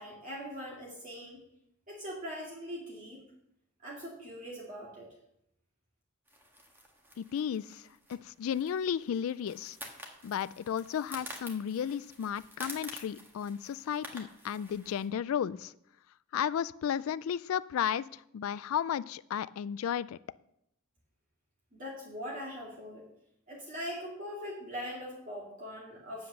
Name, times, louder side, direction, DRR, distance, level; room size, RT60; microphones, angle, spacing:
voice 1, 0.0-1.4 1.9-3.2 3.8-5.1 21.7-23.1 23.5-26.3, equal, 40° right, -4 dB, 2.3 m, -41 dB
sound 1, 6.3-15.1, equal, 10° right, 1.7 m, -49 dB
voice 2, 7.2-9.8 10.2-15.7 16.3-20.2, left 8 dB, 70° left, 17 dB, 0.3 m, -33 dB
9.6 x 7.8 x 6.7 m, 0.77 s
head